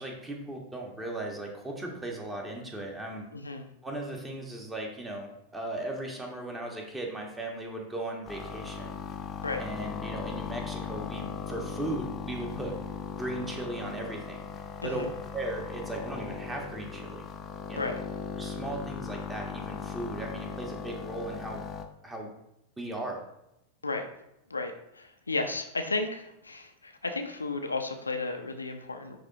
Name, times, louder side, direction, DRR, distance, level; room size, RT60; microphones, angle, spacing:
voice 1, 0.0-3.2 3.8-8.9 9.6-12.8 13.2-14.4 14.8-15.1 15.3-17.3 17.7-18.0 18.4-21.6 22.0-22.3 22.8-23.2, right 2 dB, 10° right, 1 dB, 1.5 m, -37 dB
voice 2, 3.3-3.7 9.4-9.6 14.8-15.1 17.8-18.0 23.8-24.0 24.5-29.2, left 3 dB, 80° left, 5 dB, 0.7 m, -33 dB
sound 1, 8.3-21.8, left 5 dB, 25° left, 0.7 m, -38 dB
10.0 x 3.5 x 2.9 m, 0.84 s
figure-of-eight pair, 90°, 0 cm